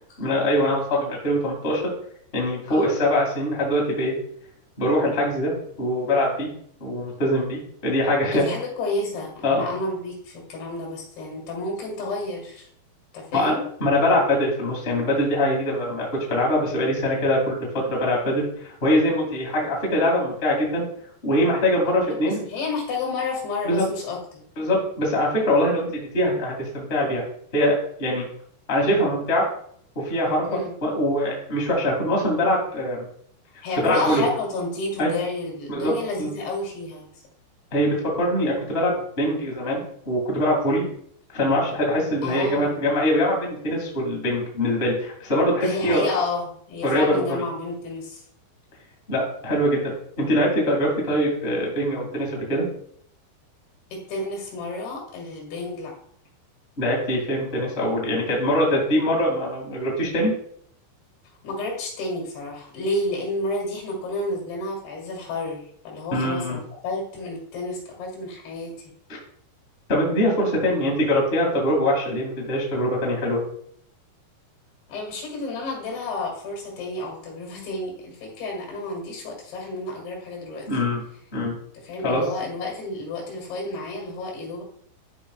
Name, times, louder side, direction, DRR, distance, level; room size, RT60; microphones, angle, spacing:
voice 1, 0.2-1.8 2.3-4.1 4.8-5.5 5.8-6.5 6.8-8.5 9.4-9.7 13.3-20.9 21.2-22.4 23.6-23.8 24.6-27.2 27.5-28.3 28.7-29.4 29.9-30.4 30.8-33.1 33.8-34.2 35.0-35.1 35.7-36.3 37.7-40.8 41.3-46.1 46.8-47.4 49.1-52.6 56.8-60.3 66.1-66.6 69.9-73.4 80.7-81.0 81.3-81.5 82.0-82.2, left 1 dB, 25° left, -2 dB, 1.4 m, -23 dB
voice 2, 2.7-3.0 8.3-12.7 13.1-13.7 22.0-24.5 30.5-30.8 33.6-37.1 42.2-42.8 45.6-48.2 53.9-55.9 61.4-68.9 74.9-80.7 81.8-84.6, left 2 dB, 85° left, -1 dB, 4.1 m, -31 dB
12.0 x 5.2 x 2.3 m, 0.64 s
omnidirectional pair, 4.5 m